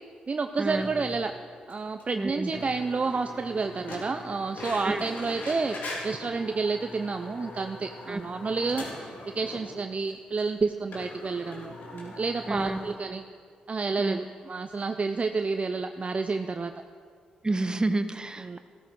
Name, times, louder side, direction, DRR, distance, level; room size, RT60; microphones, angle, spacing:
voice 1, 0.3-1.3 1.7-13.2 13.7-16.7 18.4-18.6, right 4 dB, 40° right, 7 dB, 0.6 m, -30 dB
sound 1, 0.7-1.3 1.7-1.8 2.0-2.1 2.5-9.7 10.1-10.2 10.4-10.5 10.9-13.0, left 2 dB, 70° left, 3.4 m, -41 dB
voice 2, 2.1-2.5 4.8-5.0 8.1-8.2 12.5-12.8 14.0-14.2 17.4-18.6, right 2 dB, 25° right, 9 dB, 1.1 m, -29 dB
14.5 x 13.5 x 4.7 m, 2.1 s
hypercardioid pair, 40°, 3 cm